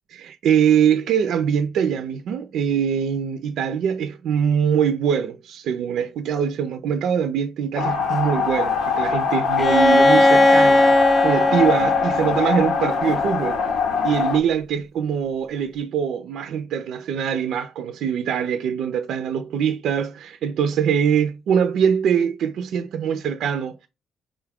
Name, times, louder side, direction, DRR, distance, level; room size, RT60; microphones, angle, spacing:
voice 1, 0.1-13.6 14.0-23.9, right 8 dB, 75° right, 0.4 m, -23 dB
sound 1, 7.7-14.4, left 6 dB, 80° left, 0.8 m, -22 dB
Bowed string instrument, 9.6-13.3, left 1 dB, 25° left, 0.4 m, -18 dB
5.3 x 2.3 x 3.4 m
cardioid pair, 90°, 0 cm